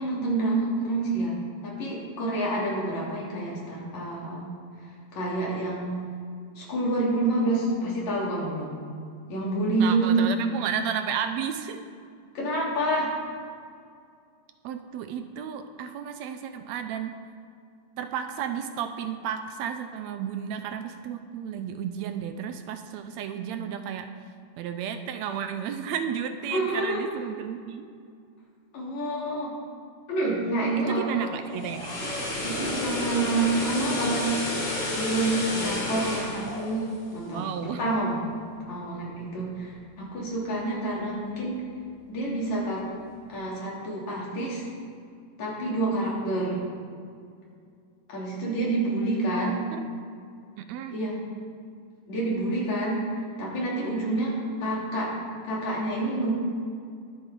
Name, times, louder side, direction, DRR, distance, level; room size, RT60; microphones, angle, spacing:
voice 1, 0.0-1.4 1.6-4.5 5.1-5.9 6.6-8.7 9.3-10.3 12.3-13.1 26.5-27.1 28.7-29.6 30.1-31.3 32.4-34.3 34.9-36.9 37.1-37.5 37.8-38.2 38.7-41.6 42.1-42.9 43.3-44.6 45.4-46.6 48.1-49.6 50.9-51.2 52.1-53.0 53.4-55.1 55.5-56.3, right 2 dB, 70° left, -5 dB, 4.2 m, -28 dB
voice 2, 9.8-11.8 14.6-17.3 18.0-24.1 24.6-27.9 30.8-31.9 37.3-37.8 48.9-49.9 50.6-51.0, right 8 dB, 80° right, 8 dB, 1.8 m, -33 dB
sound 1, 31.4-37.6 37.9-38.1, left 1 dB, 55° left, 4.6 m, -31 dB
21.5 x 8.1 x 3.8 m, 2.3 s
omnidirectional pair, 3.3 m